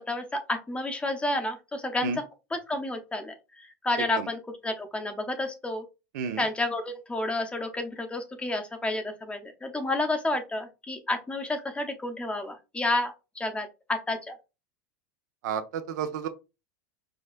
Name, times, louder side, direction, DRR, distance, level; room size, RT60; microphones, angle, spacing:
voice 1, 0.0-2.1 2.7-5.8 6.4-14.4, left 2 dB, 10° left, 0.7 m, -30 dB
voice 2, 15.4-16.3, right 6 dB, 75° right, 0.6 m, -31 dB
4.8 x 2.2 x 2.4 m
hypercardioid pair, 110°, 10 cm